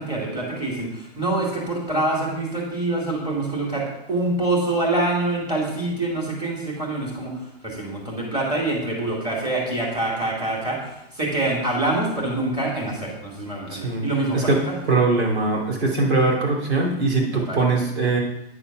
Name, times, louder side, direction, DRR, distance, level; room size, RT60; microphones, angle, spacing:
voice 1, 0.0-14.7 17.5-17.6, right 2 dB, 15° right, -3 dB, 2.3 m, -25 dB
voice 2, 13.7-14.0 14.3-14.6 14.9-18.2, right 3 dB, 80° right, -1 dB, 3.0 m, -21 dB
9.1 x 4.3 x 5.9 m, 0.84 s
hypercardioid pair, 150°, 33 cm